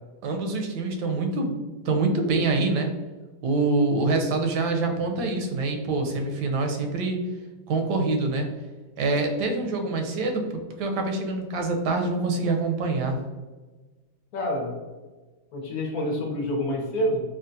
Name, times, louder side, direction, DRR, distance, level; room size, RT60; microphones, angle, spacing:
voice 1, 0.2-2.9 3.4-7.2 7.7-8.5 9.0-10.4 10.8-13.2, right 3 dB, 80° right, 4 dB, 1.1 m, -25 dB
voice 2, 14.3-14.7 15.5-17.2, equal, 65° left, -1 dB, 1.2 m, -27 dB
3.7 x 2.2 x 2.6 m, 1.3 s
omnidirectional pair, 1.8 m